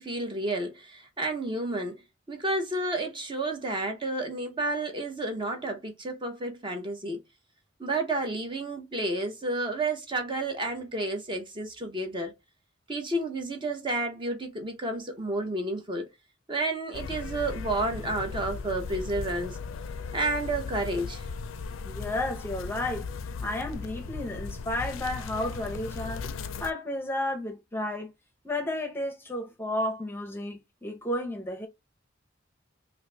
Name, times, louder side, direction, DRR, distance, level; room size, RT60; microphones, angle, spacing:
voice 1, 0.0-2.0 2.3-7.2 7.8-12.3 12.9-16.1 16.5-19.6 20.1-21.3, right 2 dB, 25° right, 0.7 m, -31 dB
sound 1, 16.9-26.7, left 5 dB, 85° left, 0.4 m, -37 dB
voice 2, 21.8-23.1 23.4-26.3 26.6-28.1 28.4-31.7, left 1 dB, 10° left, 0.7 m, -32 dB
3.0 x 2.5 x 3.3 m
head